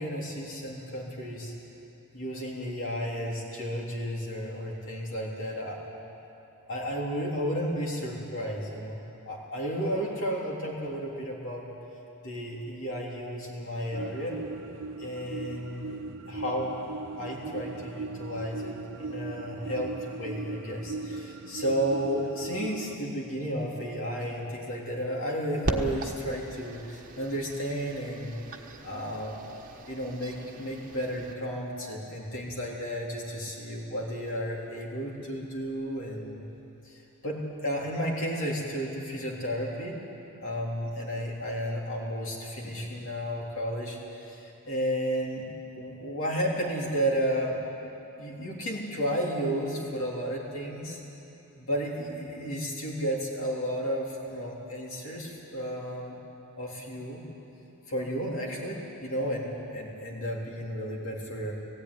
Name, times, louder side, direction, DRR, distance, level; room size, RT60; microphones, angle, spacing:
voice 1, 0.0-1.5 2.1-5.8 6.7-9.0 9.3-11.7 12.2-14.4 15.0-16.0 16.3-16.8 17.2-28.4 28.8-29.4 29.9-36.4 36.8-40.0 40.4-45.5 45.8-47.6 48.2-51.0 51.5-56.2 56.6-57.2 57.9-61.5, equal, 65° left, -2 dB, 3.6 m, -33 dB
sound 1, 13.9-23.0, right 3 dB, 60° right, 0.6 m, -39 dB
sound 2, 25.6-31.3, right 1 dB, 40° right, 1.3 m, -38 dB
17.5 x 16.5 x 9.8 m, 3.0 s
head